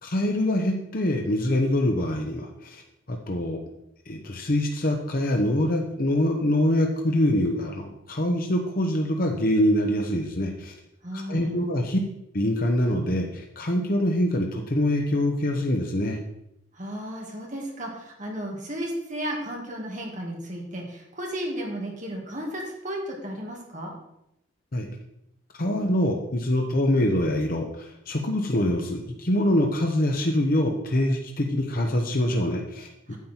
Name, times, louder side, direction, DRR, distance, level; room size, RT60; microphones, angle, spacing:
voice 1, 0.0-2.8 3.1-3.6 4.1-10.7 11.1-12.0 12.3-16.2 24.7-24.9 25.6-33.2, left 1 dB, 45° left, 2 dB, 0.9 m, -24 dB
voice 2, 11.0-11.7 16.7-23.9 33.1-33.2, equal, 35° right, 0 dB, 2.1 m, -34 dB
9.5 x 7.3 x 4.4 m, 0.82 s
head